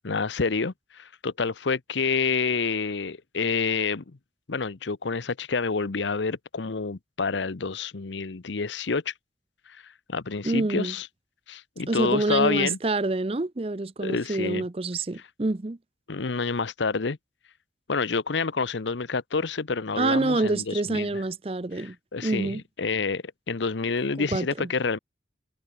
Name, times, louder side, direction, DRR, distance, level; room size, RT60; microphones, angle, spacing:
voice 1, 0.0-4.2 4.5-9.1 9.7-11.1 11.5-12.8 14.0-14.7 16.1-17.2 17.9-21.2 21.8-25.0, left 4 dB, 80° left, 0.8 m, -28 dB
voice 2, 10.4-10.9 11.9-15.8 20.0-22.6 24.2-24.7, right 2 dB, 30° right, 0.6 m, -27 dB
head